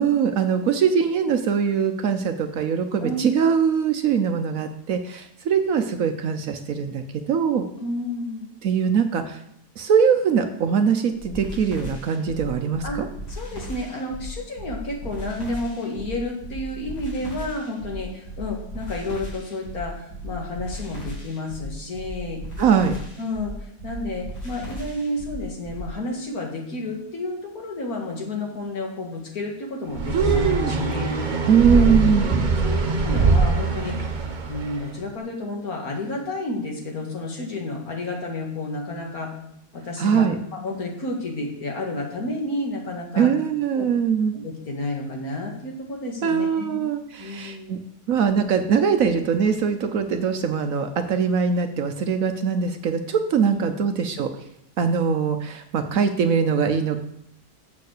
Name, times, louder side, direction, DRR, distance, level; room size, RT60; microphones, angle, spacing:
voice 1, 0.0-7.6 8.6-9.4 9.8-13.1 22.6-22.9 30.1-30.7 31.5-32.3 40.0-40.4 43.2-44.3 46.2-47.8 48.1-54.3 54.8-57.0, right 6 dB, 65° right, 7 dB, 1.1 m, -22 dB
voice 2, 3.0-3.3 7.8-8.5 12.8-13.0 13.3-22.4 23.2-30.4 30.8-31.1 31.7-31.9 32.3-32.4 32.6-34.0 34.5-39.3 39.7-40.3 40.5-43.3 43.7-43.9 44.3-46.8 47.2-47.8 53.5-53.6, left 2 dB, 65° left, 0 dB, 2.4 m, -31 dB
sound 1, 11.2-25.9, equal, 85° left, 3.9 m, -36 dB
sound 2, 29.9-34.8, right 3 dB, 40° right, 0.8 m, -22 dB
7.3 x 6.9 x 6.6 m, 0.75 s
omnidirectional pair, 1.7 m